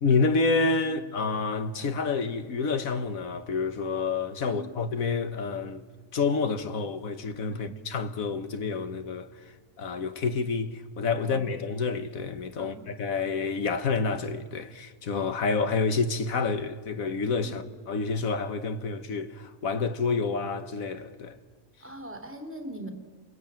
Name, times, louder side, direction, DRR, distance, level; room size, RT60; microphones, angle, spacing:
voice 1, 0.0-5.8 6.1-9.4 9.8-21.4, left 4 dB, 80° left, 1.7 m, -28 dB
voice 2, 21.8-22.9, right 1 dB, 10° right, 3.2 m, -42 dB
28.5 x 21.5 x 8.9 m
omnidirectional pair, 1.5 m